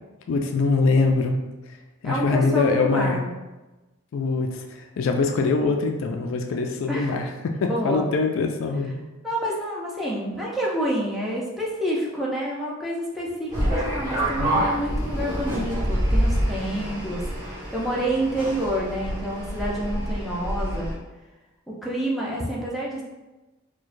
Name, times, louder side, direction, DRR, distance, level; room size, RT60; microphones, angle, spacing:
voice 1, 0.3-1.4 2.0-3.2 4.1-9.0 14.4-14.7, left 3 dB, 60° left, 4 dB, 0.3 m, -23 dB
voice 2, 2.0-3.3 6.9-7.2 7.6-8.0 9.2-20.9 21.7-23.0, right 1 dB, ahead, -5 dB, 0.5 m, -28 dB
sound 1, 13.5-20.9, equal, 15° right, 1.3 m, -27 dB
4.4 x 2.2 x 2.5 m, 1.1 s
head